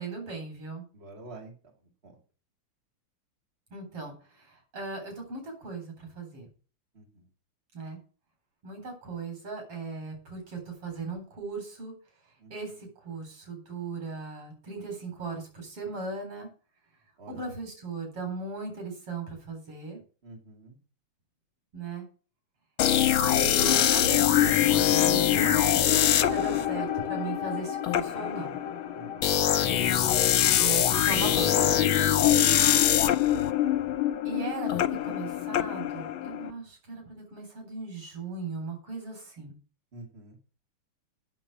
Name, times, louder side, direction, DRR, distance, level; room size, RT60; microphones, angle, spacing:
voice 1, 0.0-0.8 3.7-6.5 7.7-8.0 8.6-11.9 12.5-16.5 17.3-20.0 21.7-22.0 23.2-28.6 30.6-31.9 34.2-39.6, right 3 dB, 90° right, 3 dB, 5.0 m, -38 dB
voice 2, 0.9-1.5 2.0-2.2 6.9-7.2 12.4-12.5 17.2-17.5 20.2-20.8 28.9-29.3 32.4-32.7 39.9-40.4, right 2 dB, 30° right, 1 dB, 2.6 m, -47 dB
sound 1, 22.8-36.5, left 11 dB, 75° left, 1.5 m, -24 dB
8.9 x 6.9 x 7.6 m, 0.38 s
omnidirectional pair, 2.4 m